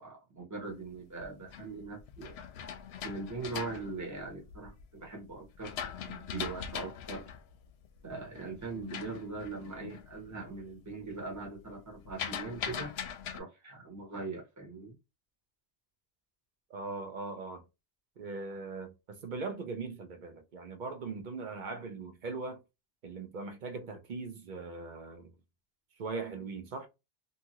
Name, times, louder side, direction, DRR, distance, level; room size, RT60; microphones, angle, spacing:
voice 1, 0.0-2.3 3.0-5.8 6.0-7.3 8.0-12.9 13.3-14.9, right 3 dB, 15° right, 1.0 m, -41 dB
sound 1, 1.0-4.8 5.3-10.1 10.5-10.9 11.2-13.4, left 8 dB, 75° left, 0.8 m, -41 dB
voice 2, 16.7-17.6 18.2-22.6 23.0-25.3 26.0-26.9, right 4 dB, 50° right, 0.8 m, -40 dB
2.8 x 2.4 x 2.8 m
omnidirectional pair, 1.1 m